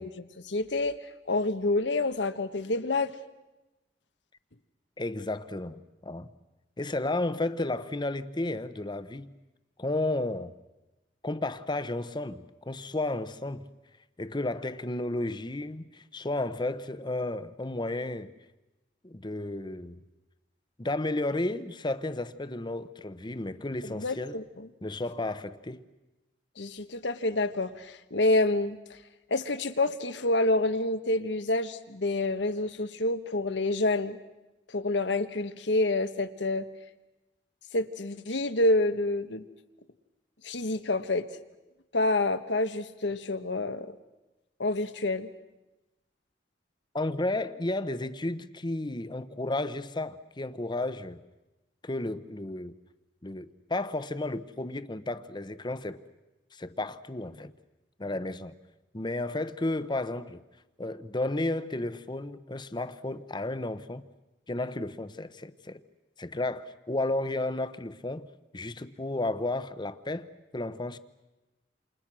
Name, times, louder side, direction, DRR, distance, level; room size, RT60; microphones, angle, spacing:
voice 1, 0.0-3.1 23.8-24.7 26.6-29.0 29.3-34.2 34.7-36.6 37.7-39.5 40.4-41.3 41.9-43.9 44.6-45.3, left 2 dB, 85° left, 1.3 m, -28 dB
voice 2, 5.0-6.3 6.8-9.3 9.8-10.5 11.2-13.6 14.2-18.3 19.0-20.0 20.8-24.4 24.8-25.8 46.9-51.2 51.8-52.7 53.2-56.0 56.5-57.5 58.0-58.5 58.9-60.4 60.8-64.0 64.5-65.8 66.2-68.3 68.5-70.3 70.5-71.0, left 2 dB, 25° left, 0.9 m, -33 dB
28.5 x 28.0 x 6.2 m
head